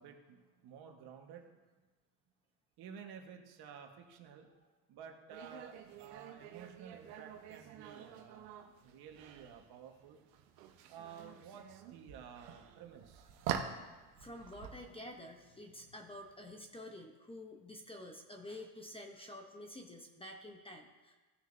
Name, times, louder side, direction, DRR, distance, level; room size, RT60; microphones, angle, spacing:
voice 1, 0.0-1.5 2.8-4.5 4.9-8.5 8.8-10.2 10.9-13.3, right 7 dB, 55° right, 3 dB, 1.5 m, -53 dB
sound 1, 5.3-16.6, right 8 dB, 90° right, 1.2 m, -47 dB
voice 2, 14.2-21.1, left 1 dB, 10° left, 3 dB, 0.9 m, -49 dB
17.5 x 6.4 x 2.7 m, 1.2 s
supercardioid pair, 115°, 47 cm